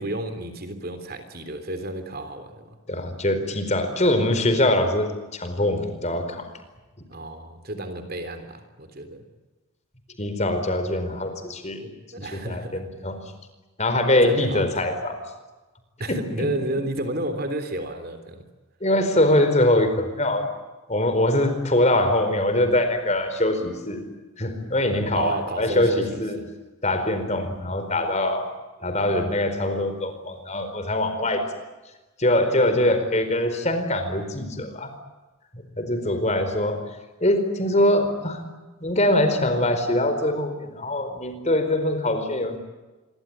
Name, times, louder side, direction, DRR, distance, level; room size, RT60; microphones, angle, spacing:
voice 1, 0.0-2.8 7.1-9.2 12.1-12.8 14.2-14.9 16.0-18.4 25.2-26.5, right 1 dB, 45° right, 9 dB, 3.4 m, -31 dB
voice 2, 2.9-6.5 10.2-11.9 12.2-13.2 13.8-15.2 16.1-16.5 18.8-20.5 20.9-24.0 24.4-26.4 26.8-28.5 28.8-31.5 32.2-34.9 35.8-36.8 37.2-38.4 38.8-42.6, left 1 dB, 30° left, 8 dB, 4.5 m, -23 dB
27.0 x 23.5 x 8.9 m, 1.2 s
head